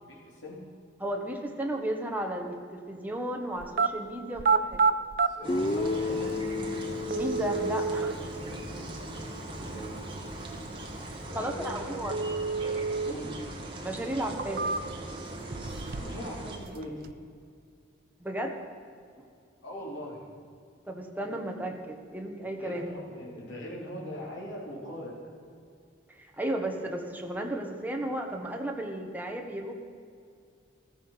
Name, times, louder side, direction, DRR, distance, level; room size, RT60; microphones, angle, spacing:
voice 1, 0.1-0.6 5.2-6.4 9.4-10.0 11.3-12.0 13.0-13.4 16.0-17.1 19.6-20.3 22.6-25.3, equal, 70° left, -5 dB, 3.6 m, -41 dB
voice 2, 1.0-4.8 7.1-8.1 8.5-8.6 11.1-12.4 13.8-14.8 18.2-18.5 20.9-22.8 26.1-29.8, right 1 dB, 10° right, 2 dB, 1.4 m, -34 dB
sound 1, 3.6-3.9 4.3-5.3 6.3-6.4 7.1-8.1 12.1-13.1 13.5-13.6 14.2-15.1 15.5-16.2 16.5-17.1, right 4 dB, 45° right, 0.5 m, -28 dB
sound 2, 5.4-16.6, right 2 dB, 25° right, 1.8 m, -39 dB
Guitar, 5.5-9.4, left 3 dB, 25° left, 0.4 m, -33 dB
14.5 x 14.5 x 5.9 m, 2.4 s
head